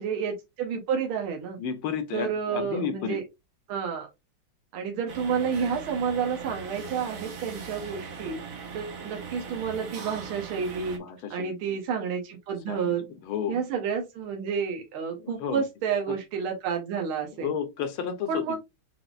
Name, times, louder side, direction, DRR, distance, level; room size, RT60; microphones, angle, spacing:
voice 1, 0.0-1.6 2.1-3.2 3.7-4.1 4.7-8.4 8.7-11.0 11.3-13.0 13.5-17.5 18.3-18.6, right 6 dB, 80° right, 1.8 m, -30 dB
voice 2, 1.6-3.2 11.0-11.8 12.7-13.6 15.2-15.6 16.1-16.2 17.4-18.6, left 7 dB, 75° left, 1.7 m, -32 dB
sound 1, 5.1-11.0, right 5 dB, 50° right, 1.1 m, -40 dB
5.5 x 3.4 x 2.4 m
omnidirectional pair, 2.4 m